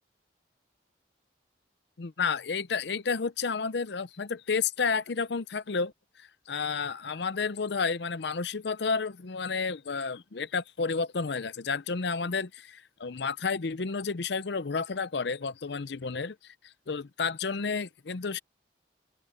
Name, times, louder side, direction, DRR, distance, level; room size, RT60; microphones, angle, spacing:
voice 1, 2.0-5.9 6.2-18.4, left 5 dB, 70° left, 0.6 m, -31 dB
open air
head